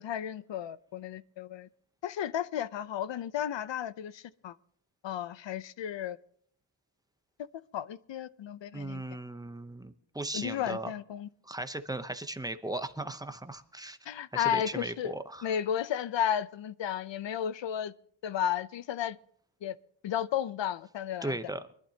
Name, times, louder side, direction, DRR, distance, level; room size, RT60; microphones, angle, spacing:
voice 1, 0.0-1.7 2.0-4.6 5.0-6.2 7.7-9.0 10.3-11.3 14.1-15.1 15.4-17.9 18.2-19.2 19.6-19.8 20.0-21.4, left 10 dB, 70° left, 0.7 m, -33 dB
voice 2, 8.7-10.9 11.4-15.5 21.2-21.6, right 1 dB, 10° right, 0.8 m, -37 dB
24.5 x 11.5 x 2.8 m
wide cardioid pair, 140°, 45 cm